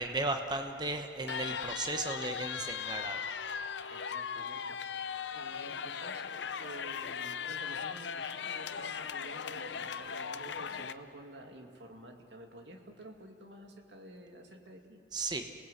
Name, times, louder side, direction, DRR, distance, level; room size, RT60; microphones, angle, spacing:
voice 1, 0.0-3.2 15.1-15.5, right 2 dB, 25° right, 5 dB, 1.0 m, -35 dB
sound 1, 1.3-10.9, left 7 dB, 80° left, 0.6 m, -38 dB
voice 2, 3.9-15.0, right 1 dB, 75° right, 3 dB, 2.3 m, -50 dB
27.0 x 19.0 x 8.0 m, 2.4 s
head